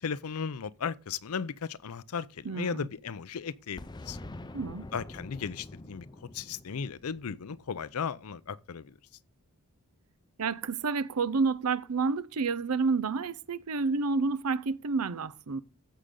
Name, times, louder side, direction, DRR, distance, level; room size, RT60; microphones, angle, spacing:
voice 1, 0.0-4.2 4.9-6.1 6.3-8.9, left 6 dB, 75° left, 0.5 m, -36 dB
voice 2, 2.4-2.9 4.5-4.9 10.4-15.6, right 4 dB, 85° right, 0.6 m, -29 dB
Boom, 3.8-8.4, left 2 dB, 20° left, 0.5 m, -46 dB
15.0 x 6.5 x 3.8 m
head